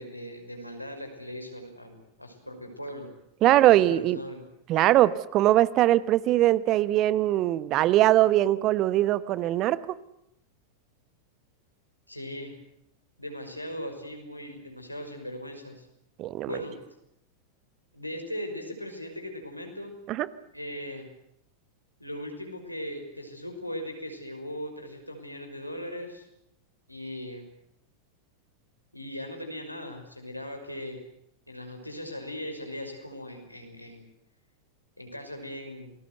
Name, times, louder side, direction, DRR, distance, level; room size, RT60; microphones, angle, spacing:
voice 1, 0.0-3.1 3.4-4.4 12.1-12.5 13.2-15.9 16.4-16.8 17.9-19.9 20.5-21.1 22.0-26.3 26.9-27.5 28.9-31.0 31.5-34.1 35.0-35.9, equal, 90° left, 4 dB, 5.7 m, -39 dB
voice 2, 3.4-4.2 4.7-9.8 16.2-16.5 20.1-20.3, right 14 dB, 35° right, 17 dB, 1.2 m, -21 dB
28.5 x 21.0 x 8.1 m, 0.77 s
figure-of-eight pair, 90°, 0 cm